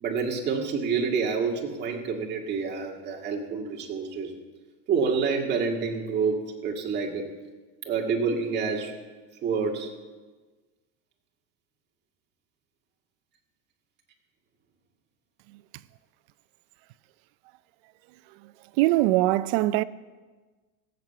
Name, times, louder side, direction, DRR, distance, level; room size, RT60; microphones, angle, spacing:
voice 1, 0.0-4.3 4.9-7.3 7.9-8.9 9.4-9.9, right 5 dB, 30° right, 1.9 m, -28 dB
voice 2, 18.8-19.8, right 17 dB, 60° right, 0.6 m, -21 dB
17.0 x 7.5 x 6.8 m
supercardioid pair, 140°, 34 cm